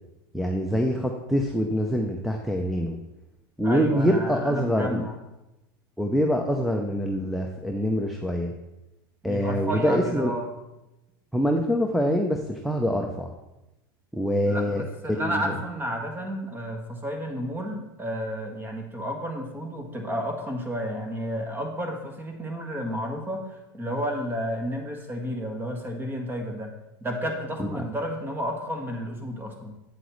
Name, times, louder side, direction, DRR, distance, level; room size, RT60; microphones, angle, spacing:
voice 1, 0.3-3.0 3.6-5.0 6.0-8.5 9.2-10.3 11.3-13.3 14.1-14.8 15.1-15.6 27.6-27.9, equal, ahead, 1 dB, 0.7 m, -25 dB
voice 2, 3.6-5.1 9.2-10.5 14.5-26.7 27.0-29.7, equal, 15° right, 3 dB, 1.6 m, -31 dB
8.4 x 7.6 x 3.2 m, 0.96 s
hypercardioid pair, 105°, 12 cm